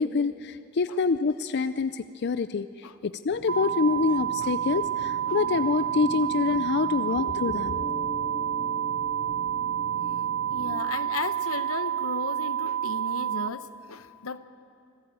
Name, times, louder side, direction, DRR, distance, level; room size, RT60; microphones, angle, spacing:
voice 1, 0.0-7.9, left 4 dB, 50° left, 12 dB, 0.5 m, -26 dB
sound 1, 3.3-10.7, right 3 dB, 85° right, 6.4 m, -43 dB
sound 2, 3.5-13.5, right 10 dB, 65° right, 0.8 m, -29 dB
Mallet percussion, 7.5-12.0, left 3 dB, 10° right, 6.1 m, -44 dB
voice 2, 10.5-14.4, left 4 dB, 85° left, 12 dB, 1.0 m, -35 dB
25.5 x 15.0 x 8.8 m, 2.8 s
head